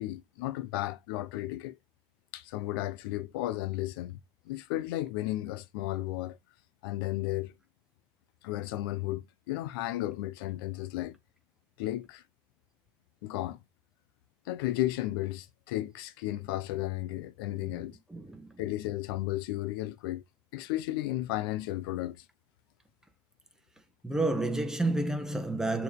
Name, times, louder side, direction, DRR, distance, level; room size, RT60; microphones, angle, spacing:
voice 1, 0.0-1.8 2.3-4.2 4.5-6.4 6.8-7.5 8.4-11.2 11.8-12.2 13.2-13.6 14.5-18.0 18.6-20.2 20.5-22.2, left 16 dB, 90° left, 0.7 m, -34 dB
voice 2, 18.1-18.5 24.0-25.8, right 2 dB, 5° right, 1.8 m, -30 dB
6.7 x 4.4 x 3.5 m
supercardioid pair, 100°, 12 cm